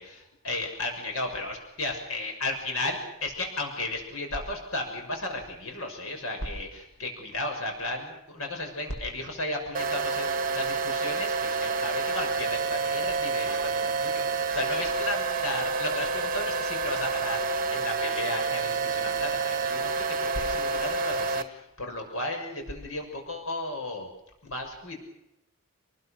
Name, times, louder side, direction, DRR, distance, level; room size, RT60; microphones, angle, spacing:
voice 1, 0.0-24.1 24.4-25.0, left 2 dB, 85° left, 2 dB, 6.3 m, -34 dB
sound 1, 9.7-21.4, right 4 dB, 40° right, 1.9 m, -28 dB
30.0 x 20.5 x 6.7 m, 0.85 s
head